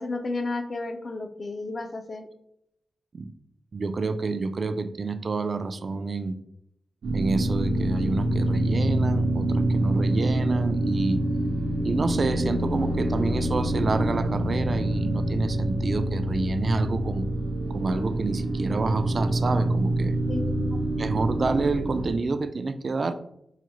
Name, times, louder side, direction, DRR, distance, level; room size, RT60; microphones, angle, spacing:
voice 1, 0.0-2.2 20.3-20.7, left 2 dB, 50° left, 6 dB, 0.4 m, -32 dB
voice 2, 3.7-6.4 7.1-11.2 11.8-17.3 17.7-20.2 21.0-23.1, right 3 dB, 55° right, 10 dB, 0.3 m, -28 dB
sound 1, 7.0-22.2, right 1 dB, 85° right, 0.7 m, -26 dB
4.7 x 2.1 x 3.0 m, 0.76 s
cardioid pair, 80°, 0 cm